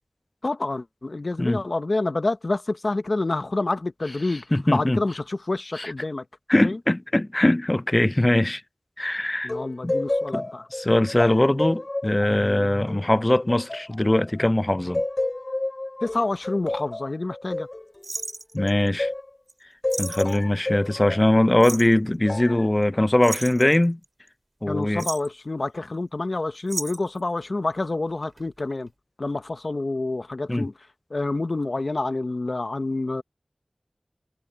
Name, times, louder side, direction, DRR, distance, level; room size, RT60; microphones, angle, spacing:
voice 1, 0.4-6.2 6.6-6.8 9.4-10.7 12.4-12.7 16.0-17.7 24.7-28.9 29.2-30.7 31.1-33.2, left 2 dB, 70° left, 0.7 m, -28 dB
voice 2, 4.3-5.0 5.8-5.9 6.5-8.6 9.0-9.5 9.8-9.9 10.3-10.5 10.7-15.0 18.5-19.1 20.0-24.0 24.6-25.1 30.5-30.7, left 1 dB, 30° left, 0.4 m, -21 dB
sound 1, 9.5-14.5 14.9-19.3 19.8-21.3 22.3-22.7, left 2 dB, 50° left, 2.7 m, -30 dB
sound 2, 18.0-18.9 19.5-19.6 19.9-20.4 21.6-22.0 23.2-24.3 24.8-25.4 26.7-27.2 28.2-28.6 28.9-29.0, right 2 dB, 60° right, 3.6 m, -34 dB
wide cardioid pair, 50°, 0 cm